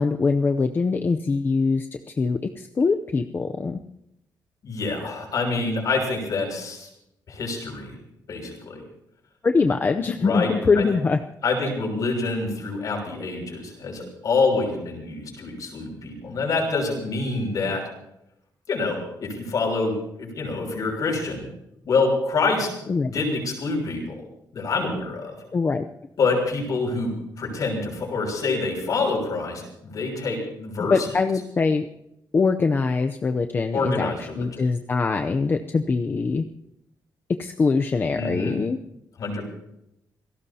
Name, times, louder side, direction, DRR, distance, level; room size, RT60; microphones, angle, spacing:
voice 1, 0.0-1.9 2.2-3.8 9.4-11.2 22.9-23.1 25.5-25.8 30.9-31.9 32.3-36.4 37.4-38.8, left 4 dB, 30° left, 6 dB, 0.6 m, -23 dB
voice 2, 4.6-6.9 7.3-7.9 8.3-8.8 10.2-10.5 10.8-10.9 11.4-17.8 18.7-21.4 21.9-22.7 23.1-24.0 24.5-25.3 26.2-27.1 27.4-31.1 33.7-34.6 38.1-38.6 39.2-39.5, left 3 dB, 55° left, 1 dB, 6.3 m, -26 dB
27.0 x 18.0 x 2.8 m, 0.81 s
wide cardioid pair, 175°, 7 cm